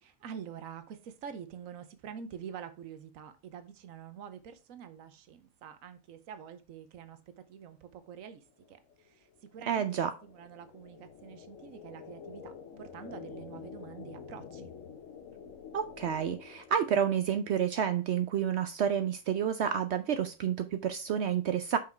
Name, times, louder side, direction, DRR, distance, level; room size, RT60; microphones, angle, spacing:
voice 1, 0.0-14.7, right 8 dB, 90° right, 1.1 m, -47 dB
sound 1, 8.5-17.4, left 6 dB, 70° left, 1.2 m, -48 dB
voice 2, 9.7-10.1 15.7-21.8, right 8 dB, 65° right, 0.8 m, -29 dB
5.8 x 4.8 x 4.3 m
omnidirectional pair, 1.4 m